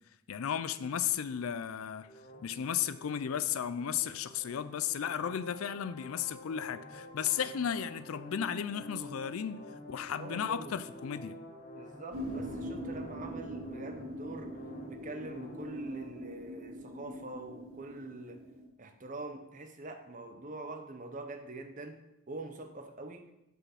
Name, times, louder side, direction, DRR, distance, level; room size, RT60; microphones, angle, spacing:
voice 1, 0.3-2.1 2.4-9.6 9.9-11.3, left 8 dB, 80° left, 14 dB, 0.4 m, -34 dB
sound 1, 2.1-16.0, left 1 dB, 40° left, 1.3 m, -49 dB
voice 2, 10.2-10.9 11.7-14.5 14.9-18.4 18.8-22.0 22.3-23.3, right 2 dB, 35° right, 6 dB, 0.8 m, -44 dB
sound 2, 12.1-18.6, equal, 85° right, 1.8 m, -42 dB
6.1 x 5.6 x 5.8 m, 0.89 s
head